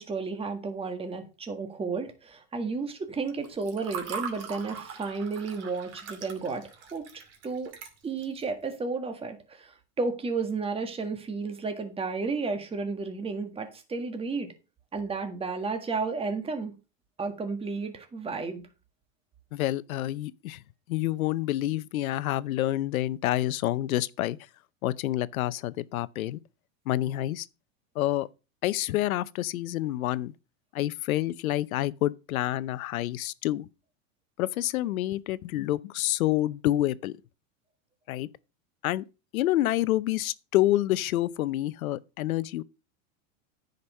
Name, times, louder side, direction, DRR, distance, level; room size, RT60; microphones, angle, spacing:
voice 1, 0.0-7.7 8.0-14.5 14.9-16.7 17.2-18.6, right 4 dB, 15° right, 1.6 m, -32 dB
Water / Fill (with liquid), 3.3-8.4, right 6 dB, 35° right, 2.6 m, -41 dB
voice 2, 19.5-20.6 20.9-24.4 24.8-26.4 26.9-27.5 28.0-28.3 28.6-30.3 30.7-33.7 34.4-37.1 38.1-38.3 38.8-39.0 39.3-42.6, left 14 dB, 90° left, 0.7 m, -28 dB
9.7 x 5.3 x 5.3 m
supercardioid pair, 130°, 41 cm